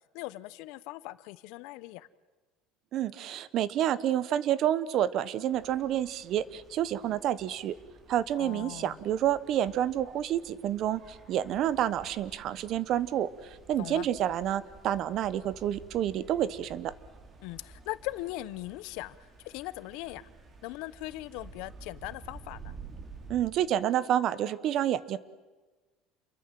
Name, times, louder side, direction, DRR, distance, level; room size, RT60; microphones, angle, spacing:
voice 1, 0.1-2.1 8.4-9.0 13.8-14.1 17.4-19.2 19.4-20.3 20.6-22.7, left 18 dB, 70° left, 0.9 m, -39 dB
voice 2, 2.9-7.8 8.1-16.9 23.3-25.2, right 11 dB, 45° right, 1.1 m, -29 dB
sound 1, 5.5-23.5, right 4 dB, 25° right, 2.7 m, -52 dB
29.0 x 23.0 x 7.6 m
cardioid pair, 150°, 0 cm